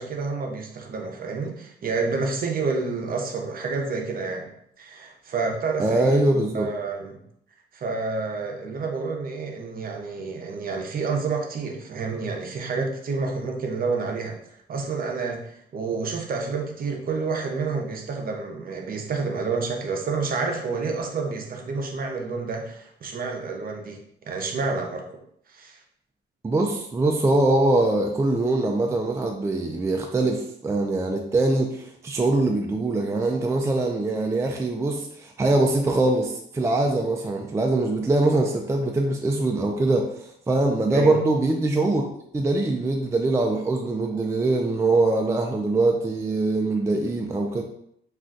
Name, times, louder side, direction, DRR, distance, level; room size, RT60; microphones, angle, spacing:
voice 1, 0.0-4.5 4.8-6.2 6.5-7.2 7.7-14.3 14.7-15.4 15.7-24.0 24.3-25.1 25.5-25.8 40.9-41.2, right 4 dB, 45° right, 2 dB, 0.6 m, -29 dB
voice 2, 5.8-6.7 26.4-42.0 42.3-47.6, right 2 dB, 15° right, 2 dB, 0.3 m, -23 dB
2.4 x 2.2 x 3.8 m, 0.71 s
cardioid pair, 90°, 20 cm